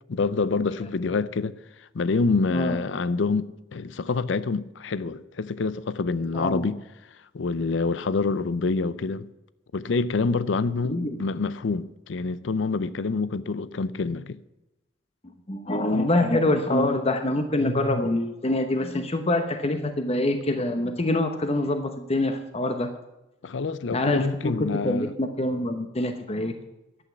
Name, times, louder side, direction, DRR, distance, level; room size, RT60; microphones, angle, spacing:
voice 1, 0.1-1.5 1.8-6.8 7.3-9.3 9.7-14.4 23.4-25.1, left 4 dB, 75° left, 0.5 m, -26 dB
voice 2, 6.3-6.6 10.9-11.2 15.5-22.9 23.9-24.5 24.8-26.5, left 1 dB, 35° left, 0.9 m, -25 dB
11.5 x 8.4 x 8.3 m
head